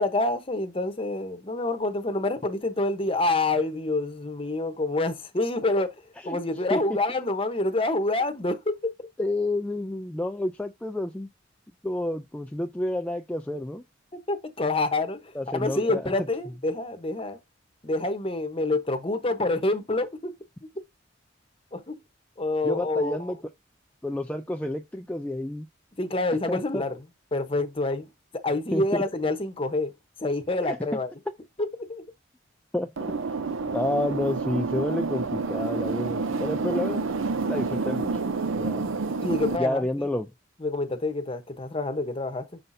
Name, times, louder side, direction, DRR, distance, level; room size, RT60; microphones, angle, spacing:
voice 1, 0.0-5.9 6.3-9.1 14.1-17.4 17.8-20.3 21.7-22.0 22.4-23.3 26.0-27.0 27.3-28.1 28.3-29.9 30.2-31.1 31.6-32.0 39.2-40.1 40.6-42.4, left 2 dB, 25° left, 0.9 m, -27 dB
voice 2, 9.2-11.3 11.8-13.8 15.4-16.1 22.6-23.4 24.0-25.7 26.5-26.8 28.7-29.0 30.6-30.8 31.3-31.4 32.7-33.1 33.7-37.0 37.4-38.2 38.6-38.9 39.6-40.3, left 1 dB, 5° left, 0.3 m, -29 dB
sound 1, 33.0-39.6, right 4 dB, 80° right, 0.6 m, -28 dB
6.7 x 5.7 x 2.6 m
head